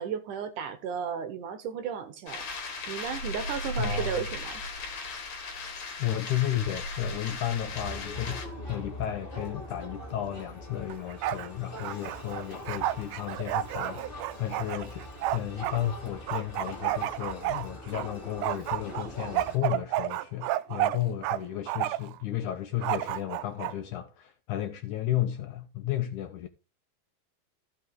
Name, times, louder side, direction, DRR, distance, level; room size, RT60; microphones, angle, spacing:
voice 1, 0.0-2.5 2.9-4.6, right 7 dB, 70° right, 2.2 m, -34 dB
sound 1, 2.3-8.5, left 2 dB, 50° left, 2.9 m, -36 dB
voice 2, 3.8-4.2 6.0-15.1 15.3-26.5, left 12 dB, 80° left, 1.8 m, -33 dB
Crowd, 7.6-19.6, left 1 dB, 15° left, 2.7 m, -43 dB
Bark, 10.9-11.5 11.8-15.8 16.3-18.1 18.4-21.4 21.7-22.2 22.8-23.7, right 14 dB, 90° right, 1.8 m, -31 dB
15.0 x 5.8 x 3.7 m
omnidirectional pair, 4.3 m